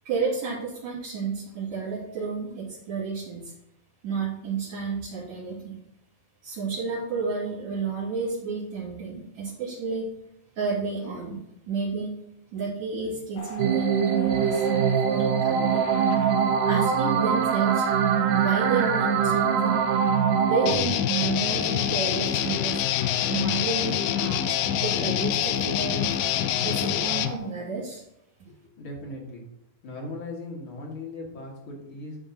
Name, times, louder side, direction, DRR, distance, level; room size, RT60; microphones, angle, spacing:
voice 1, 0.1-3.5 4.0-5.8 6.4-10.1 10.6-12.1 12.5-15.9 16.6-17.9 18.3-19.8 20.4-22.8 23.3-24.4 24.8-26.1 26.6-28.0, right 5 dB, 50° right, -10 dB, 3.9 m, -31 dB
sound 1, 13.3-27.4, equal, 65° left, 1.3 m, -38 dB
sound 2, 13.6-20.7, right 7 dB, 75° right, 1.7 m, -23 dB
Guitar, 20.6-27.4, left 11 dB, 80° left, 2.1 m, -26 dB
voice 2, 28.5-29.5 29.8-32.2, left 2 dB, 40° left, -2 dB, 2.5 m, -38 dB
12.5 x 5.8 x 2.9 m, 0.81 s
omnidirectional pair, 4.0 m